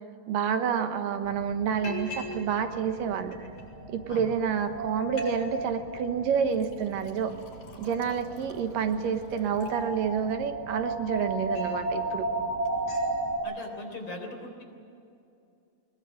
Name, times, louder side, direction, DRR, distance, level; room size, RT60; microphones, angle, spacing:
voice 1, 0.3-3.4 3.9-7.3 7.8-12.3, right 7 dB, 80° right, 7 dB, 2.9 m, -28 dB
Liquid, 0.7-0.8 1.1-1.4 1.8-2.4 2.7-3.6 4.3-4.4 4.7-4.8 5.0-5.3 5.6-6.0 6.5-10.3 10.8-11.8 12.2-12.4 12.7-13.1, left 2 dB, 85° left, 7.9 m, -47 dB
sound 1, 1.2-13.4, right 1 dB, 20° right, 5.3 m, -35 dB
voice 2, 13.4-14.6, left 2 dB, 35° left, 3 dB, 4.1 m, -40 dB
21.5 x 21.0 x 9.2 m, 2.6 s
omnidirectional pair, 3.9 m